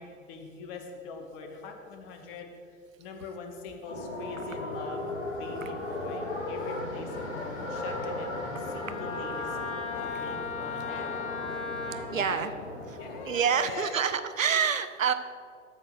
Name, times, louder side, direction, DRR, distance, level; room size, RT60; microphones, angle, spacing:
voice 1, 0.0-2.5 3.0-5.0 5.4-11.1 12.0-12.6 13.0-14.0, left 4 dB, 45° left, 3 dB, 1.6 m, -42 dB
sound 1, 3.9-13.3, left 2 dB, 60° left, 2.6 m, -37 dB
Wind instrument woodwind instrument, 7.7-12.0, left 4 dB, 15° left, 1.9 m, -37 dB
voice 2, 12.1-12.5 13.2-15.1, right 7 dB, 80° right, 11 dB, 0.7 m, -27 dB
8.7 x 6.0 x 6.6 m, 2.3 s
figure-of-eight pair, 95°, 39 cm